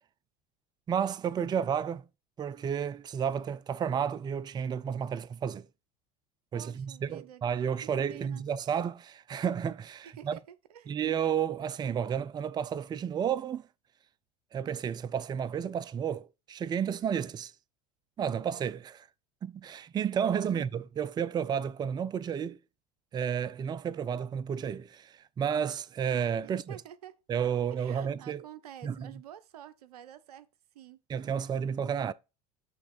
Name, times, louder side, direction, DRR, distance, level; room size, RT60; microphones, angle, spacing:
voice 1, 0.9-2.1 2.4-5.7 6.5-10.4 10.9-13.7 14.5-17.5 18.2-19.1 19.4-22.6 23.1-26.8 27.3-28.4 28.8-29.1 31.1-32.1, right 8 dB, 20° right, 0.4 m, -32 dB
voice 2, 6.5-8.4 10.0-10.9 20.4-20.6 26.4-27.2 27.6-30.5 30.7-31.0 31.3-31.5, right 11 dB, 80° right, 0.6 m, -49 dB
8.9 x 3.2 x 4.2 m
hypercardioid pair, 85°, 19 cm